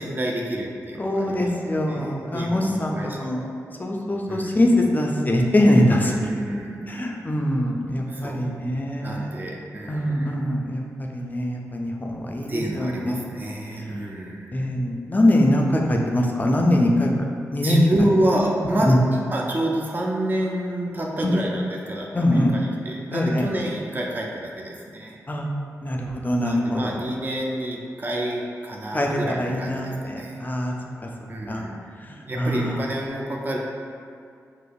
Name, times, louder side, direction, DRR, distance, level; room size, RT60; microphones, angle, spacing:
voice 1, 0.0-1.5 1.9-3.5 4.3-4.6 6.0-6.9 8.1-8.6 9.0-10.3 12.5-14.7 17.6-25.2 26.4-30.4 31.3-33.6, right 1 dB, 30° right, -2 dB, 0.5 m, -28 dB
voice 2, 1.0-3.4 3.8-6.1 6.9-9.3 9.9-13.2 14.5-17.2 17.5-17.9 18.9-19.0 22.1-22.5 23.1-23.4 25.3-25.5 25.8-27.0 28.9-30.7 31.5-31.7 32.4-32.8, left 1 dB, 30° left, 0 dB, 0.4 m, -22 dB
5.0 x 2.0 x 2.3 m, 2.3 s
cardioid pair, 50°, 6 cm